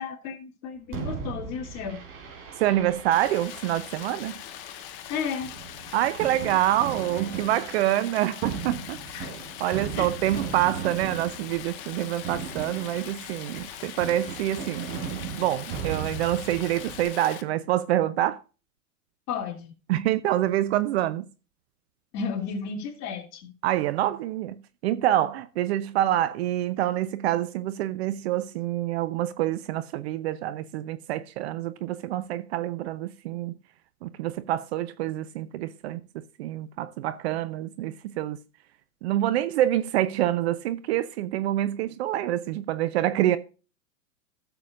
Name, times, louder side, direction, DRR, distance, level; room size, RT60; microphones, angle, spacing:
voice 1, 0.0-2.0 5.1-5.5 9.1-9.3 9.9-10.1 19.3-19.7 22.1-23.5, left 6 dB, 35° left, 2.7 m, -33 dB
Fireworks, 0.9-17.1, right 6 dB, 30° right, 3.7 m, -38 dB
voice 2, 2.6-4.4 5.9-14.9 15.4-18.4 19.9-21.3 23.6-33.5 34.0-38.4 39.0-43.4, right 13 dB, 45° right, 0.7 m, -26 dB
Stream, 3.1-17.4, left 11 dB, 15° left, 0.4 m, -42 dB
16.0 x 7.0 x 2.5 m
hypercardioid pair, 120°, 45 cm